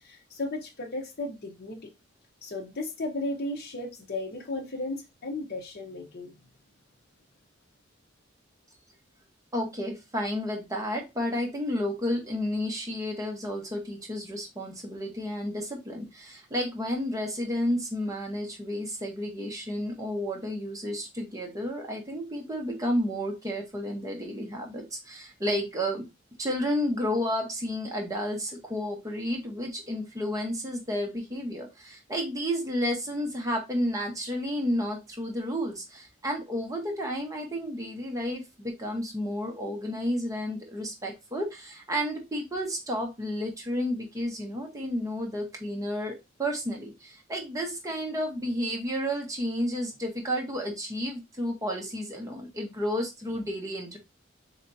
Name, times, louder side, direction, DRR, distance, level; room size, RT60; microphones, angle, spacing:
voice 1, 0.0-1.9 2.4-6.4, left 2 dB, 50° left, 0.8 m, -35 dB
voice 2, 9.5-26.1 26.4-54.0, equal, 15° right, 0.9 m, -31 dB
4.3 x 3.3 x 2.6 m
head